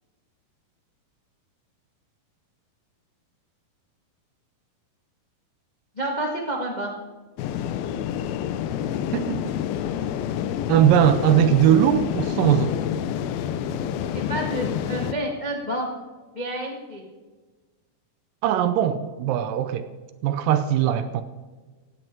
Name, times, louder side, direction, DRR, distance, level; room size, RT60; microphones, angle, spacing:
voice 1, 5.9-6.9 14.1-15.9 16.3-17.0, right 1 dB, 35° left, 0.7 m, -29 dB
sound 1, 7.4-15.1, left 10 dB, 85° left, 2.6 m, -28 dB
voice 2, 9.1-9.5 10.7-12.8 18.4-19.9 20.2-21.2, right 10 dB, 80° right, 2.2 m, -20 dB
17.0 x 9.5 x 4.5 m
omnidirectional pair, 4.2 m